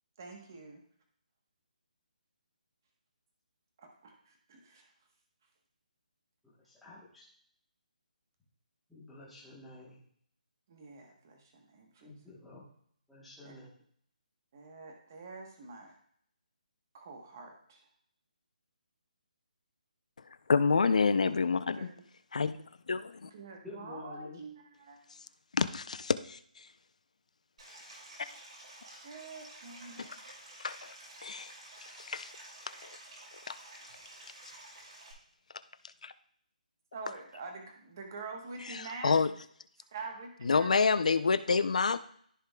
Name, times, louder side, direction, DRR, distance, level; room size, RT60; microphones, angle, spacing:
voice 1, 0.2-0.8 3.8-4.9 10.7-12.1 13.4-13.5 14.5-16.0 16.9-17.8 21.7-22.0 23.3-25.0 29.0-30.0 36.9-39.2 39.9-40.8, right 4 dB, 25° right, 2 dB, 1.1 m, -46 dB
voice 2, 6.4-7.2 8.9-10.0 12.0-12.7 13.1-13.7 23.6-24.4, left 2 dB, ahead, -8 dB, 1.1 m, -49 dB
voice 3, 20.5-21.9 22.3-22.6 22.9-23.2 25.5-26.4 30.0-30.1 30.6-30.9 31.2-31.5 32.0-32.3 32.8-32.9 33.5-33.6 36.0-36.1 38.7-39.3 40.4-42.0, left 5 dB, 55° left, 13 dB, 0.5 m, -28 dB
Stream, 27.6-35.1, right 1 dB, 45° right, 2.6 m, -51 dB
14.0 x 5.0 x 2.3 m, 0.64 s
hypercardioid pair, 180°, 5 cm